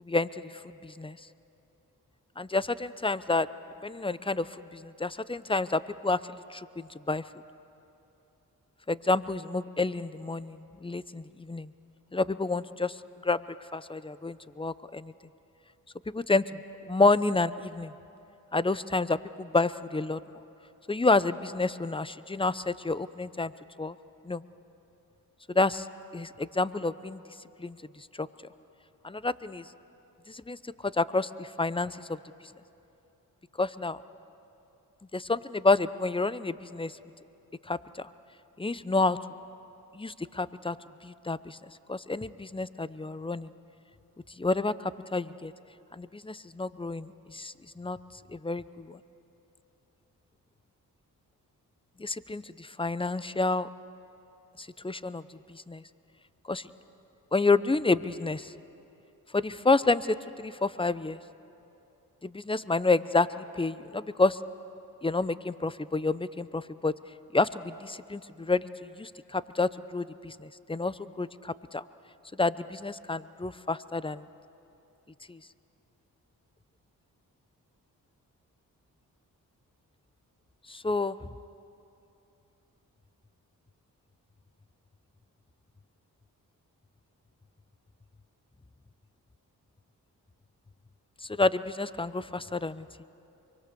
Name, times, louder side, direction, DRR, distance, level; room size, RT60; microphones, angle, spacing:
voice 1, 0.0-1.2 2.4-3.5 3.8-7.2 8.9-11.7 12.1-13.0 13.2-13.4 13.7-15.1 16.1-16.6 16.9-17.9 18.5-20.4 20.9-23.5 23.8-23.9 24.2-24.4 25.5-25.9 26.1-27.2 27.6-28.3 29.0-29.7 30.3-32.2 33.6-34.0 35.1-36.9 37.6-38.1 38.6-39.2 39.9-40.8 41.0-41.6 41.9-43.5 44.4-45.5 45.9-48.0 48.3-49.0 52.0-53.7 54.6-55.8 56.5-56.7 57.3-58.5 59.3-61.2 62.2-64.4 65.0-66.9 67.3-71.8 72.4-74.3 75.3-75.4 80.7-81.3 91.2-93.0, left 3 dB, 15° left, 16 dB, 0.8 m, -29 dB
24.0 x 23.5 x 7.0 m, 2.9 s
supercardioid pair, 45°, 37 cm